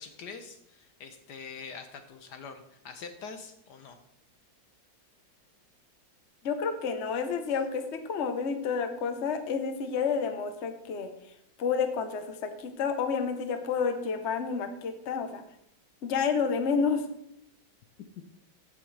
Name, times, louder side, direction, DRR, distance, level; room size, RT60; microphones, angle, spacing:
voice 1, 0.0-4.0, left 5 dB, 65° left, 8 dB, 1.3 m, -44 dB
voice 2, 6.4-11.1 11.6-15.4 16.0-17.0, left 6 dB, 45° left, 7 dB, 1.1 m, -30 dB
15.0 x 7.3 x 3.3 m, 0.77 s
omnidirectional pair, 2.0 m